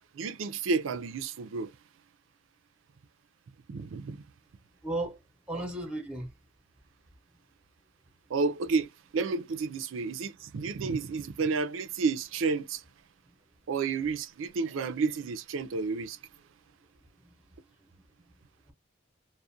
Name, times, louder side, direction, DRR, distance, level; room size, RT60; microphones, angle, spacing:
voice 1, 0.1-1.7 3.7-4.2 5.5-5.6 8.3-12.8 13.7-16.2, right 4 dB, 85° right, 0.4 m, -31 dB
voice 2, 4.8-5.2 5.5-6.3 17.2-17.4 18.2-18.3, right 1 dB, 5° right, 0.7 m, -35 dB
2.4 x 2.1 x 2.6 m
head